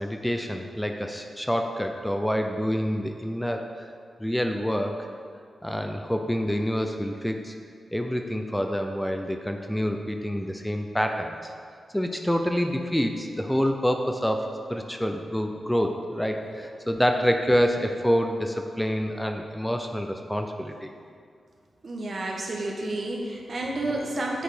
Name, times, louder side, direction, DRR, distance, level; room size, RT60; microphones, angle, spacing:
voice 1, 0.0-3.6 4.2-5.1 5.6-7.5 7.9-11.5 11.9-20.9, equal, 5° left, 4 dB, 0.6 m, -27 dB
voice 2, 21.8-24.4, right 2 dB, 60° right, -1 dB, 1.2 m, -30 dB
8.0 x 4.1 x 5.0 m, 2.2 s
cardioid pair, 50°, 0 cm